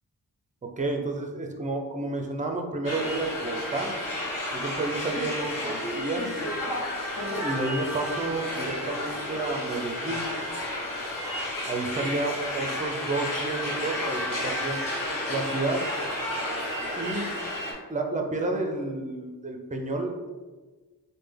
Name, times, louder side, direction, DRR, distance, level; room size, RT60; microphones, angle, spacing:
voice 1, 0.6-3.9 4.5-6.4 7.4-10.2 11.7-14.9 15.3-15.8 17.0-17.3 17.9-20.2, right 2 dB, 20° right, 3 dB, 0.5 m, -30 dB
sound 1, 2.8-17.7, left 1 dB, 55° left, 1.0 m, -32 dB
3.3 x 2.2 x 3.3 m, 1.3 s
cardioid pair, 40°, 38 cm